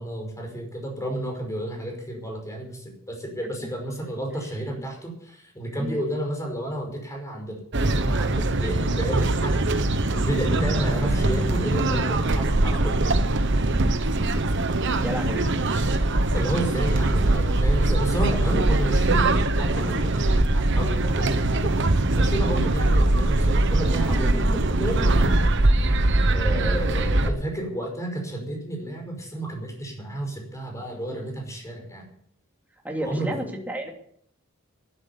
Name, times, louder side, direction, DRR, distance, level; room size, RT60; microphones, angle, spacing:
voice 1, 0.0-13.3 16.3-21.8 22.1-25.4 26.3-32.1 33.0-33.3, right 1 dB, 15° left, 2 dB, 5.2 m, -32 dB
sound 1, 7.7-27.3, right 2 dB, 55° right, 1.1 m, -22 dB
voice 2, 15.0-15.5 24.1-24.6 32.8-33.9, equal, 10° right, 0 dB, 2.8 m, -31 dB
12.0 x 12.0 x 7.1 m, 0.65 s
head